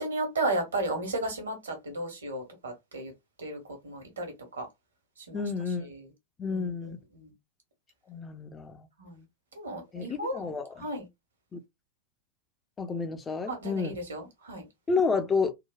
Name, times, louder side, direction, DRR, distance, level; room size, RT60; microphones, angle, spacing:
voice 1, 0.0-3.1 3.4-4.7 5.2-5.4 5.9-6.1 6.5-7.3 9.0-9.2 9.5-10.5 10.8-11.0 13.5-14.6, right 2 dB, 70° right, 1.3 m, -34 dB
voice 2, 5.3-5.9 6.4-7.0 8.1-8.9 9.9-10.9 11.5-11.6 12.8-13.9 14.9-15.5, left 4 dB, 20° left, 0.6 m, -30 dB
3.7 x 2.3 x 2.3 m
figure-of-eight pair, 90°, 0 cm